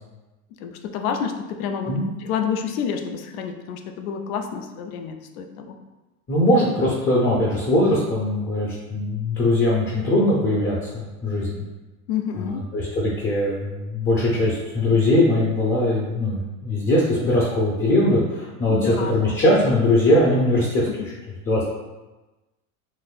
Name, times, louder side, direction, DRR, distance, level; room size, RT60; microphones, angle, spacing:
voice 1, 0.6-1.9 2.2-5.8 12.1-12.6 18.7-19.4 20.9-21.0, left 7 dB, 90° left, 6 dB, 0.5 m, -29 dB
voice 2, 6.3-11.7 12.4-20.9 21.5-21.6, left 1 dB, 30° left, -4 dB, 0.6 m, -21 dB
3.9 x 2.6 x 2.4 m, 1.1 s
supercardioid pair, 120°, 41 cm